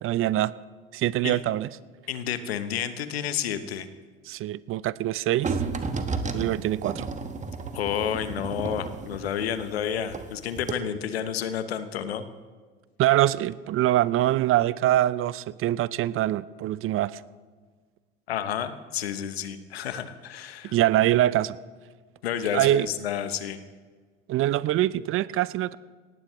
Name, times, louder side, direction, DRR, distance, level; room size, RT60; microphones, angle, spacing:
voice 1, 0.0-0.5 0.9-1.7 4.3-5.6 6.3-7.0 13.0-17.2 20.6-21.6 22.5-22.9 24.3-25.8, right 14 dB, 45° right, 19 dB, 0.5 m, -24 dB
voice 2, 2.1-3.9 7.7-12.3 18.3-20.8 22.2-23.6, left 9 dB, 85° left, 11 dB, 1.0 m, -30 dB
sound 1, 5.4-10.3 10.6-10.7, right 4 dB, 25° right, 1.4 m, -32 dB
19.0 x 15.0 x 3.1 m, 1.5 s
hypercardioid pair, 70°, 30 cm